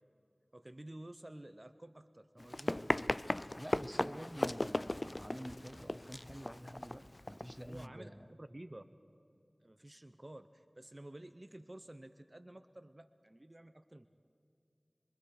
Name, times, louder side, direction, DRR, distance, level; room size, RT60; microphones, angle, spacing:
voice 1, 0.5-2.8 7.6-8.1 8.4-8.8 9.6-14.1, right 1 dB, 35° right, 10 dB, 0.7 m, -51 dB
Run, 2.4-7.9, left 1 dB, 40° left, 0.5 m, -37 dB
voice 2, 3.5-8.3, equal, 10° right, 10 dB, 1.0 m, -48 dB
27.0 x 23.5 x 4.8 m, 2.5 s
wide cardioid pair, 45°, 0 cm